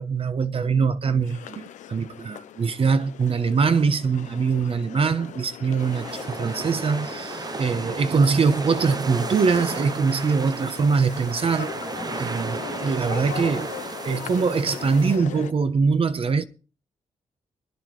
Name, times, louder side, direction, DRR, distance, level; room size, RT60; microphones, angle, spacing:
voice 1, 0.0-11.7 12.2-13.7 14.0-16.4, right 5 dB, 50° right, 1.0 m, -23 dB
sound 1, 1.2-15.5, left 10 dB, 85° left, 0.7 m, -39 dB
sound 2, 5.8-15.2, right 4 dB, 30° right, 0.7 m, -34 dB
24.5 x 10.0 x 3.2 m
cardioid pair, 75°, 12 cm